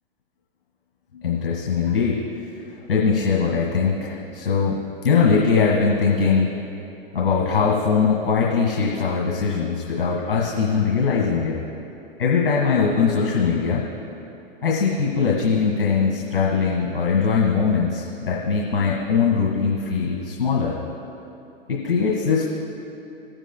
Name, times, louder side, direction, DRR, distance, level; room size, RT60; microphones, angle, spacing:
voice 1, 1.1-2.2 2.9-4.8 5.0-6.5 7.1-11.6 12.2-13.8 14.6-20.8 21.7-22.4, left 5 dB, 75° left, -3 dB, 1.8 m, -21 dB
18.0 x 9.0 x 2.3 m, 2.9 s
hypercardioid pair, 110°, 29 cm